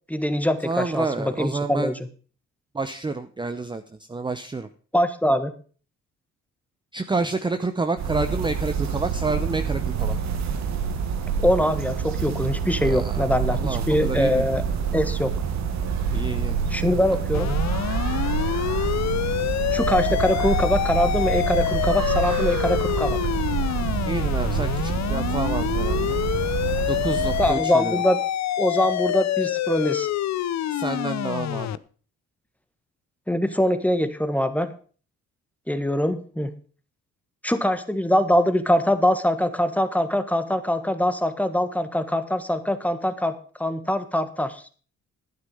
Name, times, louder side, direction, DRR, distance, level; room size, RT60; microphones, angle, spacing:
voice 1, 0.1-1.9 4.9-5.5 11.4-14.6 14.9-15.3 16.7-17.5 19.7-23.2 27.4-28.2 28.6-30.1 33.3-34.7 35.7-36.5 37.4-43.3 43.6-44.7, left 1 dB, 5° left, 10 dB, 1.4 m, -23 dB
voice 2, 0.6-1.9 2.7-4.7 6.9-10.2 12.8-14.4 16.1-16.6 24.0-26.2 26.9-28.0 30.7-31.8, right 3 dB, 15° right, 9 dB, 0.7 m, -29 dB
sound 1, 8.0-27.5, right 6 dB, 65° right, 1.8 m, -27 dB
sound 2, 17.3-31.8, left 12 dB, 65° left, 0.6 m, -27 dB
11.5 x 9.6 x 5.4 m, 0.40 s
cardioid pair, 90°, 30 cm